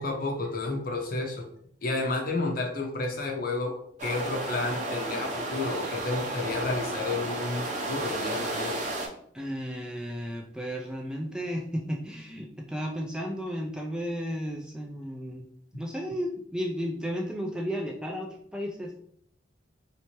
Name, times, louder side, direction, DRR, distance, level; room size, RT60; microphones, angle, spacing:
voice 1, 0.0-1.5 1.8-8.8, left 3 dB, 50° left, 2 dB, 0.7 m, -31 dB
sound 1, 4.0-9.1, right 2 dB, 40° right, 0.6 m, -33 dB
voice 2, 9.3-15.5 15.7-19.0, equal, 5° right, 0 dB, 0.3 m, -33 dB
3.2 x 2.8 x 3.0 m, 0.66 s
head